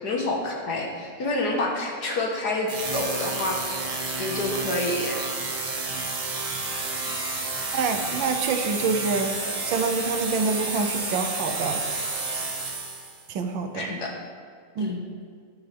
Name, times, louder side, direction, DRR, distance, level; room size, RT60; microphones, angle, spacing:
voice 1, 0.0-3.9 4.2-5.2 13.8-14.1 14.8-15.0, left 2 dB, 55° left, 0 dB, 1.7 m, -28 dB
sound 1, 2.7-13.2, right 3 dB, 55° right, 0.4 m, -30 dB
voice 2, 7.7-9.4 9.7-11.8 13.3-13.9 14.8-14.9, right 4 dB, 75° right, 5 dB, 1.5 m, -26 dB
10.5 x 10.0 x 3.4 m, 2.1 s
omnidirectional pair, 2.1 m